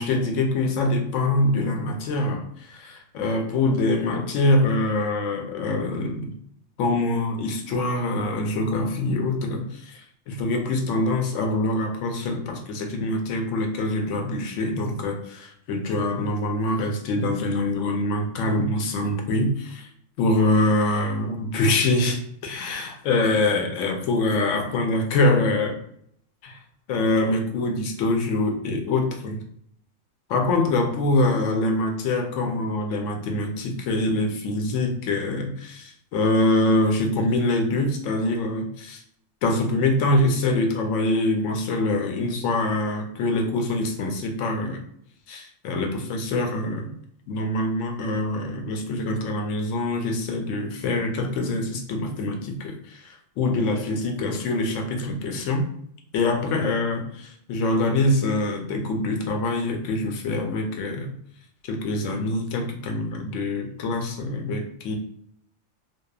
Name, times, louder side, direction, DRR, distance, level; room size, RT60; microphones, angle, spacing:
voice 1, 0.0-6.3 6.8-19.9 20.2-25.8 26.4-26.6 26.9-29.4 30.3-39.0 39.4-44.8 45.3-46.9 47.3-55.7 56.1-61.1 61.6-65.0, left 2 dB, 85° left, 3 dB, 0.9 m, -24 dB
2.7 x 2.2 x 2.3 m, 0.66 s
omnidirectional pair, 1.3 m